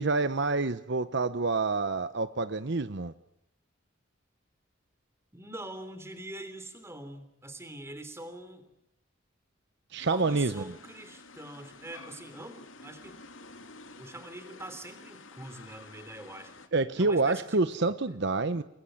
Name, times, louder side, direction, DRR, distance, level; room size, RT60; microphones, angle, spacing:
voice 1, 0.0-3.1 9.9-10.6 16.7-18.6, right 3 dB, 60° right, 12 dB, 0.9 m, -27 dB
voice 2, 5.3-8.7 10.1-13.2 14.0-16.5 17.0-17.6 18.1-18.2, right 1 dB, 15° right, 10 dB, 3.4 m, -44 dB
sound 1, 10.0-16.7, left 3 dB, 75° left, 2.5 m, -50 dB
29.5 x 21.0 x 7.8 m, 0.82 s
head